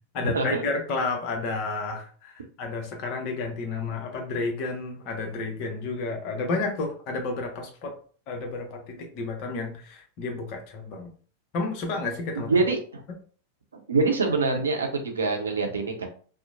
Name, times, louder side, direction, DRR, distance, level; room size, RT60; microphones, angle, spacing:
voice 1, 0.1-7.9 8.3-11.1 11.5-12.5, left 3 dB, 40° left, 2 dB, 0.8 m, -31 dB
voice 2, 12.4-13.0 13.9-16.1, right 3 dB, 70° right, 3 dB, 0.6 m, -25 dB
2.8 x 2.0 x 2.5 m, 0.42 s
figure-of-eight pair, 90°, 0 cm